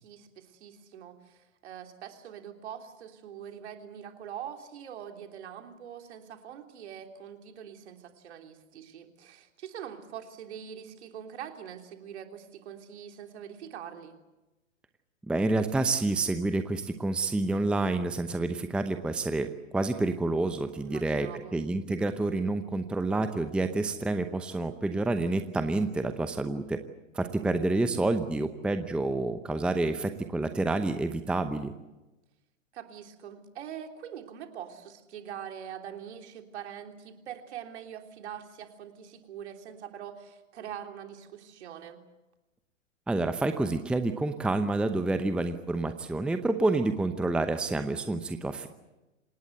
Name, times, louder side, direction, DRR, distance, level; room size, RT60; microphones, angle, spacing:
voice 1, 0.0-14.2 20.8-21.6 32.7-42.0, right 9 dB, 55° right, 4 dB, 3.4 m, -43 dB
voice 2, 15.3-19.5 19.7-26.8 27.1-31.7 43.1-48.7, right 2 dB, 5° right, 9 dB, 0.8 m, -28 dB
26.5 x 19.0 x 8.0 m, 1.0 s
figure-of-eight pair, 115°, 39 cm